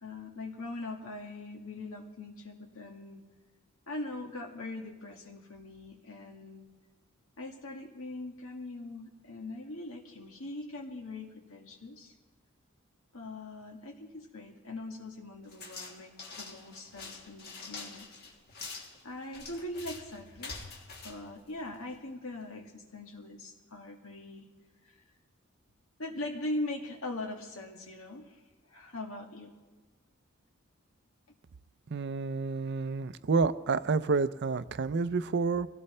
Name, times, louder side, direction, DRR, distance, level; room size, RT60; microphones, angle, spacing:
voice 1, 0.0-3.2 3.9-6.7 7.4-12.1 13.1-18.2 19.0-20.6 21.0-24.5 26.0-28.4 28.7-29.5, left 2 dB, 90° left, 3 dB, 1.8 m, -41 dB
sound 1, 15.5-22.1, left 4 dB, 50° left, 1.7 m, -46 dB
voice 2, 31.9-35.7, right 4 dB, 55° right, 14 dB, 0.5 m, -29 dB
23.0 x 16.5 x 3.3 m, 1.3 s
head